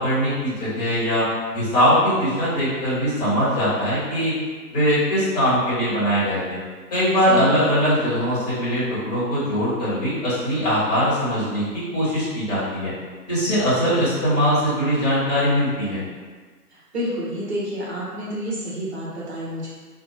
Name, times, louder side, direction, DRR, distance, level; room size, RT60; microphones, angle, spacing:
voice 1, 0.0-4.3 4.7-6.6 6.9-12.9 13.3-16.0, equal, 25° left, -11 dB, 1.0 m, -21 dB
voice 2, 7.3-7.7 16.7-19.7, equal, 40° right, -6 dB, 0.9 m, -29 dB
2.9 x 2.0 x 2.8 m, 1.4 s
figure-of-eight pair, 145°, 48 cm